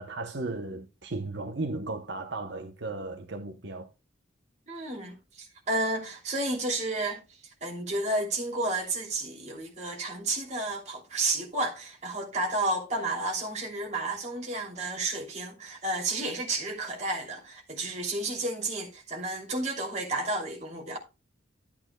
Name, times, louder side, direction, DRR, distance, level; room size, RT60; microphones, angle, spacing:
voice 1, 0.0-3.9, right 2 dB, 60° right, 0.9 m, -35 dB
voice 2, 4.7-7.2 7.6-21.0, right 2 dB, 35° right, 3.0 m, -31 dB
12.0 x 8.6 x 2.3 m
head